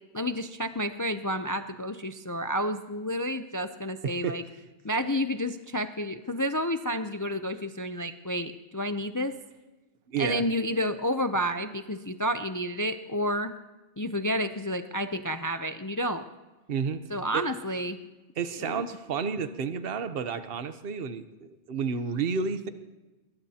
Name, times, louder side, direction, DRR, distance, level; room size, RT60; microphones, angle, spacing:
voice 1, 0.1-4.4 4.8-9.3 10.2-13.5 14.0-16.3 17.1-18.0 18.6-18.8, equal, 35° left, 8 dB, 0.3 m, -30 dB
voice 2, 4.0-4.4 10.1-10.4 16.7-17.0 17.3-17.4 18.4-22.7, right 6 dB, 55° right, 10 dB, 1.0 m, -31 dB
21.5 x 20.5 x 2.9 m, 1.1 s
omnidirectional pair, 1.2 m